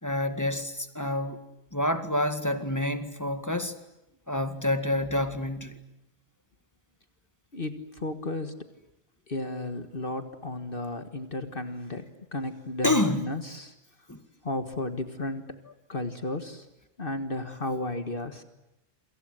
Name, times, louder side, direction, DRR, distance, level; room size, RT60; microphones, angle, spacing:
voice 1, 0.0-1.4 1.7-3.7 4.3-5.8 12.8-13.3 14.1-14.2, left 1 dB, 15° left, 9 dB, 2.0 m, -28 dB
voice 2, 7.5-8.5 9.3-12.1 12.3-13.7 14.4-16.7 17.0-18.4, left 2 dB, 45° left, 8 dB, 1.8 m, -33 dB
28.0 x 26.0 x 7.8 m, 0.89 s
omnidirectional pair, 1.3 m